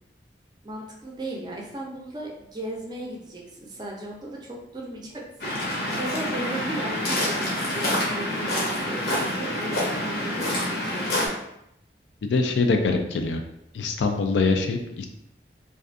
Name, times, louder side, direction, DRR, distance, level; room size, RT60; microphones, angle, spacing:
voice 1, 0.6-9.7 10.2-10.5 10.8-11.1, right 1 dB, 25° right, -2 dB, 0.4 m, -36 dB
Waves surf, 5.4-11.3, left 1 dB, 60° left, 0.7 m, -27 dB
voice 2, 12.2-13.4 13.7-15.1, left 3 dB, 85° left, 5 dB, 0.3 m, -23 dB
2.5 x 2.3 x 2.4 m, 0.81 s
head